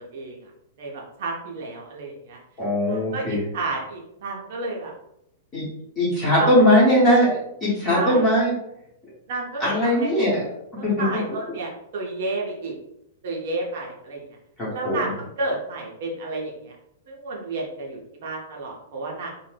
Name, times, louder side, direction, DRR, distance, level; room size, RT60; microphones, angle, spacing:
voice 1, 0.8-2.4 2.9-4.9 6.4-6.5 7.9-8.3 9.3-10.1 10.8-12.7 13.2-14.2 14.7-15.1 15.4-16.7 17.1-19.3, right 3 dB, 45° right, -2 dB, 0.6 m, -31 dB
voice 2, 2.6-3.4 5.5-5.7 6.0-8.5 9.6-10.4 10.8-11.1 14.6-15.1, equal, 15° left, -8 dB, 1.0 m, -20 dB
2.6 x 2.1 x 3.2 m, 0.81 s
supercardioid pair, 175°, 0 cm